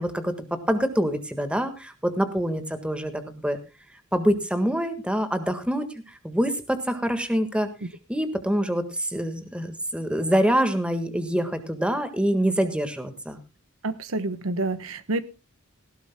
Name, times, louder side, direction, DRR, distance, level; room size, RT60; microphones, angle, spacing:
voice 1, 0.0-3.6 4.1-7.7 8.1-13.4, equal, 5° right, 9 dB, 1.6 m, -25 dB
voice 2, 13.8-15.2, right 2 dB, 90° right, 12 dB, 1.1 m, -28 dB
18.5 x 16.0 x 2.2 m, 0.29 s
head